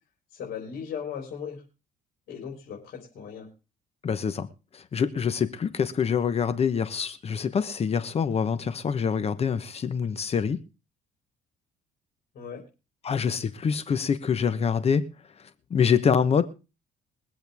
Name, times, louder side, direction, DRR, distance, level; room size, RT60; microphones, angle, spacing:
voice 1, 0.3-1.6 2.3-3.5 12.3-12.6, left 7 dB, 65° left, 4.3 m, -37 dB
voice 2, 4.0-4.5 4.7-10.6 13.0-15.1 15.7-16.4, left 6 dB, 35° left, 1.0 m, -25 dB
23.0 x 7.9 x 3.5 m
cardioid pair, 110°, 17 cm